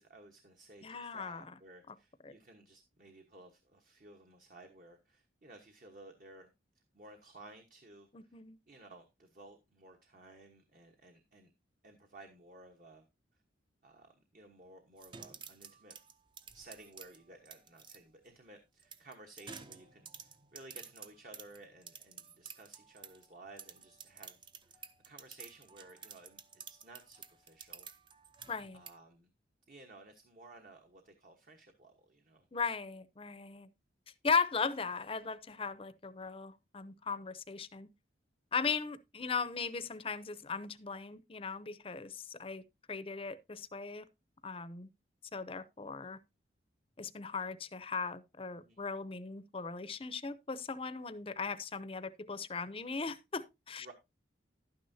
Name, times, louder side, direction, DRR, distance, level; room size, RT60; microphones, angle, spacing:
voice 1, 0.0-6.5 6.9-8.4 8.7-11.5 11.8-13.0 13.8-16.0 16.5-27.9 28.7-29.3 29.7-32.5 48.5-48.8 53.8-53.9, right 2 dB, 45° right, 1.2 m, -56 dB
voice 2, 0.8-1.4 1.9-2.0 2.2-2.3 8.1-8.6 28.5-28.8 32.5-33.7 34.2-37.9 38.5-42.6 42.9-44.1 44.4-44.9 45.3-46.2 47.0-53.9, left 5 dB, 30° left, 0.6 m, -38 dB
sound 1, 15.0-18.0 18.8-23.3 23.6-28.9, right 6 dB, 25° right, 0.6 m, -51 dB
11.5 x 9.5 x 2.7 m
head